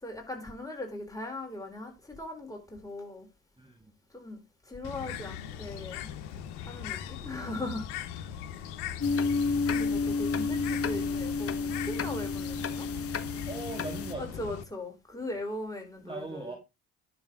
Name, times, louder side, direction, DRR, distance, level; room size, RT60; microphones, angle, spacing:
voice 1, 0.0-3.3 4.1-6.1 6.7-7.9 9.7-12.9 14.2-16.6, left 1 dB, 10° left, 3.9 m, -39 dB
voice 2, 3.6-3.9 13.5-14.5 16.0-16.6, right 3 dB, 10° right, 2.0 m, -40 dB
Bird, 4.8-14.6, left 10 dB, 65° left, 1.1 m, -40 dB
sound 1, 9.0-14.1, left 4 dB, 30° left, 1.0 m, -30 dB
10.5 x 6.5 x 3.8 m
hypercardioid pair, 50°, 43 cm